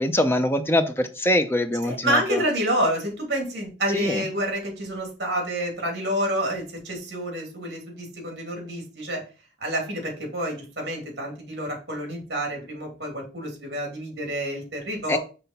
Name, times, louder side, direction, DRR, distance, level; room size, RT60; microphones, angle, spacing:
voice 1, 0.0-2.4 3.9-4.3 15.1-15.2, left 1 dB, 10° left, 0.6 m, -23 dB
voice 2, 1.8-9.2 9.6-15.2, right 1 dB, 60° right, 2.7 m, -28 dB
5.9 x 3.3 x 5.4 m
head